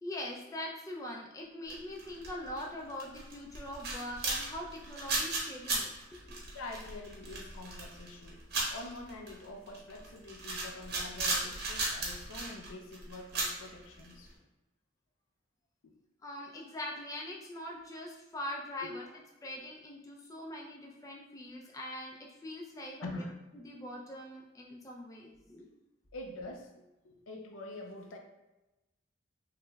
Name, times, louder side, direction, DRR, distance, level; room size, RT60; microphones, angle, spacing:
voice 1, 0.0-5.9 6.2-6.4 16.2-19.0 19.4-23.2 23.5-25.7, left 1 dB, 15° left, -2 dB, 0.3 m, -42 dB
sound 1, 1.7-2.6 2.9-14.3, right 2 dB, 50° right, 0.9 m, -36 dB
voice 2, 6.5-8.4 8.7-14.3 15.8-15.9 18.8-19.0 23.0-23.3 26.1-28.2, left 2 dB, 80° left, 3 dB, 0.5 m, -45 dB
3.2 x 2.9 x 2.2 m, 1.0 s
head